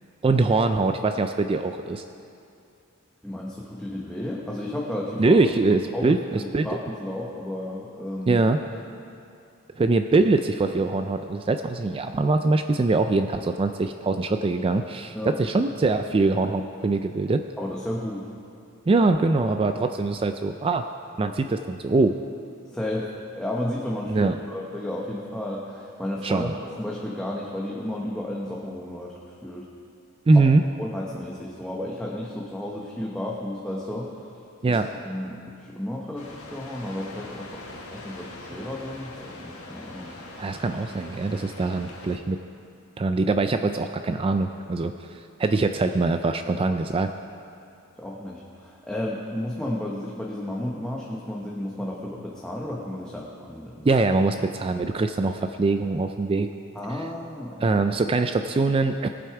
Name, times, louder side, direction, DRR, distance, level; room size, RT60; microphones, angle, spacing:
voice 1, 0.2-2.0 5.2-6.7 8.3-8.6 9.8-17.4 18.9-20.8 21.2-22.1 24.1-24.3 26.2-26.5 30.3-30.6 34.6-34.9 40.4-42.4 43.0-47.1 53.8-56.5 57.6-59.1, right 3 dB, 25° right, 7 dB, 0.3 m, -23 dB
voice 2, 3.2-5.4 5.9-8.4 15.1-15.4 17.6-18.3 22.7-23.1 23.4-26.5 26.8-29.1 29.4-29.7 30.3-30.4 30.8-34.3 34.7-37.6 37.9-40.1 48.0-53.9 56.7-57.6 58.1-58.2, left 1 dB, 5° left, -4 dB, 1.0 m, -32 dB
sound 1, 36.2-42.2, left 2 dB, 85° left, 1.9 m, -42 dB
21.0 x 7.7 x 4.8 m, 2.6 s
head